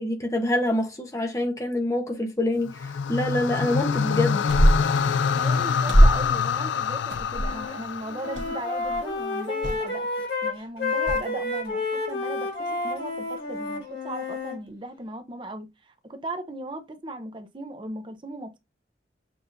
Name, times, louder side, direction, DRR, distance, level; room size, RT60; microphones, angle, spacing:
voice 1, 0.0-4.4, left 1 dB, 15° left, 0.7 m, -26 dB
sound 1, 2.7-9.0, left 6 dB, 85° left, 0.4 m, -26 dB
sound 2, 4.5-5.0 5.9-6.3 7.1-7.6 8.3-8.5 8.8-9.1 9.6-9.8 11.1-11.2, equal, 90° right, 1.0 m, -19 dB
voice 2, 5.3-10.1 10.4-18.6, right 1 dB, 25° right, 0.7 m, -37 dB
Wind instrument woodwind instrument, 7.3-7.8 8.0-14.6, left 3 dB, 60° left, 2.1 m, -30 dB
6.9 x 2.5 x 2.7 m
head